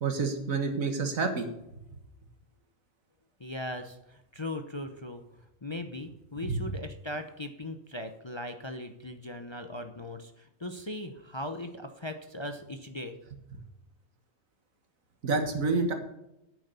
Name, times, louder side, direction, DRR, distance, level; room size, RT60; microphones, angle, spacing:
voice 1, 0.0-1.5 6.4-6.6 15.2-15.9, right 4 dB, 80° right, 6 dB, 2.0 m, -28 dB
voice 2, 3.4-5.2 5.6-13.2, left 1 dB, 25° left, 7 dB, 0.7 m, -39 dB
9.3 x 7.9 x 6.8 m, 0.89 s
omnidirectional pair, 1.4 m